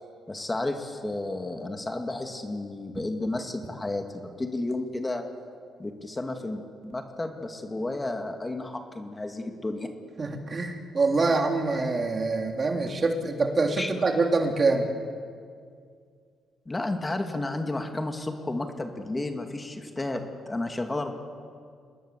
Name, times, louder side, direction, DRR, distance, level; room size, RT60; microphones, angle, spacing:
voice 1, 0.3-5.2 5.8-9.9 13.8-13.9 16.7-21.1, left 2 dB, 20° left, 5 dB, 2.4 m, -32 dB
voice 2, 10.2-14.9, right 3 dB, 35° right, 3 dB, 3.3 m, -25 dB
27.0 x 20.5 x 7.7 m, 2.2 s
cardioid pair, 90°, 0 cm